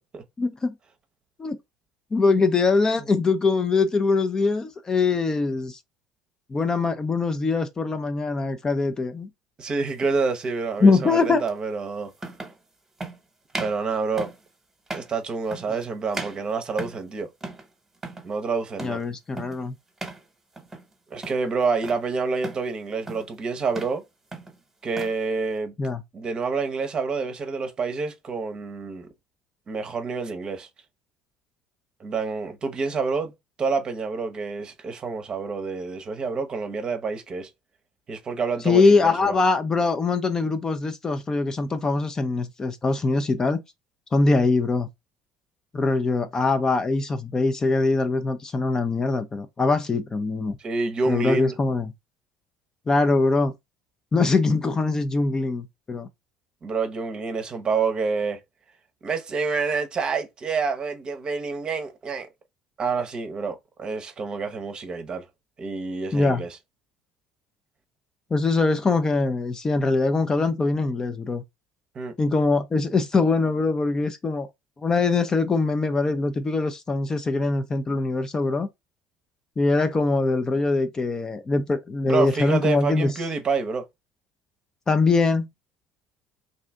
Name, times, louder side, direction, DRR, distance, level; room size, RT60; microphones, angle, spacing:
voice 1, 0.4-0.7 1.4-1.6 2.1-5.8 6.5-9.3 10.8-11.4 18.8-19.7 25.8-26.0 38.6-43.6 44.1-44.9 45.7-50.6 51.1-51.9 52.9-53.5 54.1-56.1 66.1-66.4 68.3-71.4 72.2-74.5 74.8-78.7 79.6-83.1 84.9-85.5, left 3 dB, 25° left, 0.5 m, -22 dB
voice 2, 9.6-12.1 13.6-14.3 14.9-17.3 18.2-19.0 21.1-24.0 24.8-25.7 26.1-29.1 29.7-30.7 32.0-33.3 33.6-37.5 38.1-39.3 50.6-51.6 56.6-58.4 59.0-62.3 62.8-65.2 65.6-66.6 71.9-72.1 82.0-83.8, right 4 dB, 40° right, 0.7 m, -28 dB
sound 1, 10.0-10.2 11.5-11.6 12.2-12.6 13.0-13.2 13.5-13.8 14.2-14.5 14.9-15.2 15.5-15.8 16.1-17.1 17.4-17.7 17.9-18.3 18.8-19.0 19.4-19.6 20.0-20.2 20.6-20.9 21.2-22.0 22.4-22.7 23.1-23.4 23.7-24.0 24.3-25.2, right 2 dB, 15° right, 1.1 m, -37 dB
2.6 x 2.5 x 3.4 m
hypercardioid pair, 70°, 2 cm